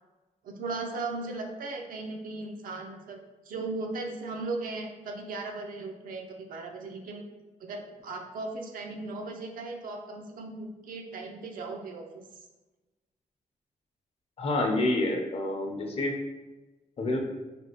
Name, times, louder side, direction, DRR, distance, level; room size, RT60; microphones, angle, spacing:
voice 1, 0.4-3.2 3.5-7.2 7.6-12.2, right 3 dB, 85° right, 2 dB, 0.5 m, -37 dB
voice 2, 14.4-16.2 17.0-17.2, left 2 dB, 45° left, 2 dB, 0.6 m, -28 dB
3.4 x 2.4 x 2.8 m, 1.1 s
cardioid pair, 100°, 14 cm